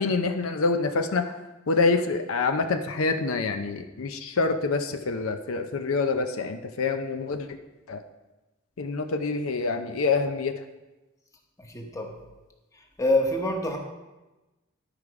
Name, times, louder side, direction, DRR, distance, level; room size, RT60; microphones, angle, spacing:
voice 1, 0.0-1.3 1.7-7.6 7.9-8.0 8.8-10.5, left 4 dB, 70° left, 7 dB, 0.6 m, -26 dB
voice 2, 11.6-12.2 12.7-13.8, left 1 dB, 15° left, 2 dB, 1.1 m, -26 dB
11.5 x 4.9 x 4.7 m, 1.1 s
head